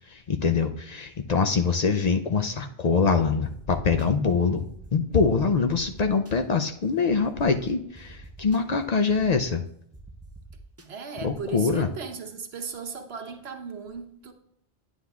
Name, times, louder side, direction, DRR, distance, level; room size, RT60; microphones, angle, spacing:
voice 1, 0.1-4.6 4.9-9.6 11.2-11.9, left 5 dB, 50° left, 0.5 m, -24 dB
sound 1, 3.4-4.1 4.6-4.9 5.4-6.3 7.1-7.2 7.5-7.6 7.9-8.6 9.1-9.5 9.9-10.9, right 2 dB, 20° right, 0.4 m, -46 dB
voice 2, 10.8-14.3, right 5 dB, 90° right, 1.2 m, -37 dB
9.7 x 9.3 x 2.3 m
omnidirectional pair, 1.0 m